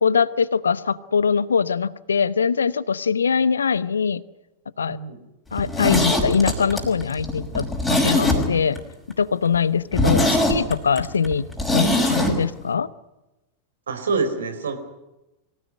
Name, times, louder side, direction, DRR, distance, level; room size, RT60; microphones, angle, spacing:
voice 1, 0.0-4.2 4.8-5.0 5.5-8.8 9.2-11.5 11.7-12.9, left 6 dB, 70° left, 18 dB, 0.9 m, -22 dB
voice 2, 4.9-5.2 13.9-14.8, right 4 dB, 70° right, 8 dB, 3.9 m, -26 dB
Zipper (clothing), 5.5-8.8 9.1-9.2 9.5-9.6 9.9-12.3 12.6-12.7, left 1 dB, 5° left, 5.6 m, -21 dB
24.0 x 17.0 x 9.5 m, 0.98 s
figure-of-eight pair, 90°, 0 cm